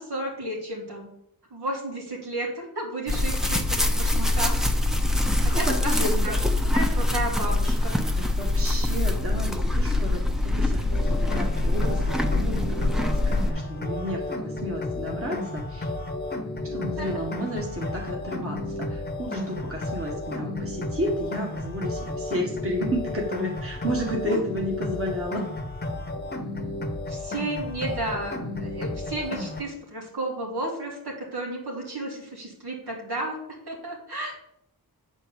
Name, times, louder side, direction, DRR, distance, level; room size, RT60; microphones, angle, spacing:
voice 1, 0.1-1.1 1.5-4.5 5.5-6.0 6.2-6.3 6.7-8.0 16.7-17.2 24.2-24.4 27.1-33.4 33.7-34.3, right 2 dB, 75° right, -2 dB, 3.0 m, -33 dB
sound 1, 3.1-13.5, left 1 dB, ahead, 0.7 m, -24 dB
voice 2, 5.2-6.4 8.1-12.5 12.8-15.9 16.7-25.4, equal, 35° right, -1 dB, 1.6 m, -32 dB
sound 2, 10.9-29.6, left 2 dB, 25° left, 1.0 m, -33 dB
8.9 x 4.5 x 7.0 m, 0.75 s
wide cardioid pair, 140°, 39 cm